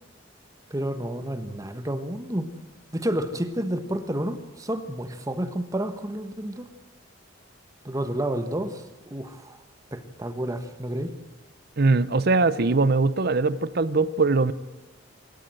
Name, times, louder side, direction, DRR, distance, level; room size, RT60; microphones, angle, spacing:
voice 1, 0.7-2.5 2.9-6.7 7.8-9.6 9.9-11.1, right 1 dB, 20° right, 9 dB, 1.4 m, -30 dB
voice 2, 11.8-14.5, right 3 dB, 55° right, 15 dB, 0.7 m, -21 dB
27.0 x 13.0 x 7.8 m, 1.2 s
head